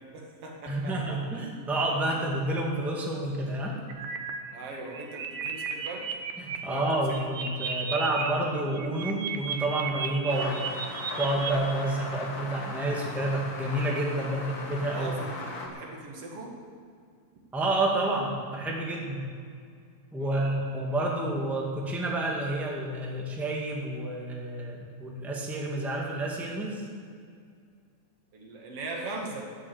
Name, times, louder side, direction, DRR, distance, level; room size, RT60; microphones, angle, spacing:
voice 1, 0.1-1.4 2.1-2.2 4.5-6.2 6.7-6.8 7.1-7.2 12.1-12.3 14.2-14.3 14.8-16.6 20.2-20.6 28.3-29.5, right 2 dB, 45° right, 0 dB, 2.5 m, -40 dB
voice 2, 0.7-3.8 6.4-10.7 11.2-15.2 17.5-19.3 20.1-26.8, right 1 dB, ahead, -2 dB, 0.6 m, -29 dB
sound 1, 3.9-4.3 4.7-6.6 6.9-8.3 8.6-11.5, right 6 dB, 70° right, 2.4 m, -34 dB
sound 2, 10.3-15.7, left 2 dB, 60° left, 0.9 m, -38 dB
14.0 x 7.6 x 9.7 m, 2.2 s
omnidirectional pair, 4.2 m